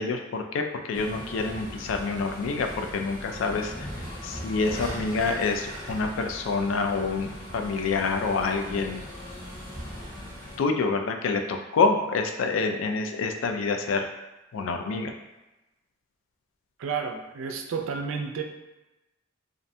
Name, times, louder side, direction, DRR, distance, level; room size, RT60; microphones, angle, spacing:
voice 1, 0.0-3.9 4.2-9.0 10.6-14.1 14.5-15.1, left 4 dB, 75° left, 5 dB, 0.3 m, -27 dB
sound 1, 0.9-10.6, equal, 25° left, 0.8 m, -39 dB
voice 2, 16.8-18.4, right 5 dB, 75° right, 4 dB, 0.3 m, -31 dB
2.5 x 2.1 x 2.6 m, 1.0 s
head